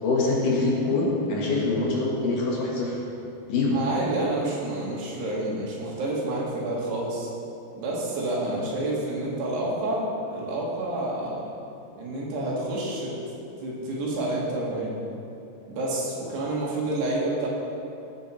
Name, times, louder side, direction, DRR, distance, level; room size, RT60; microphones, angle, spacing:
voice 1, 0.0-3.0 3.5-3.8, left 3 dB, 60° left, -3 dB, 2.9 m, -24 dB
voice 2, 3.7-7.3 7.8-11.5 12.0-15.0 15.7-17.5, right 2 dB, 85° right, -5 dB, 4.4 m, -29 dB
17.0 x 8.0 x 4.6 m, 2.7 s
omnidirectional pair, 4.7 m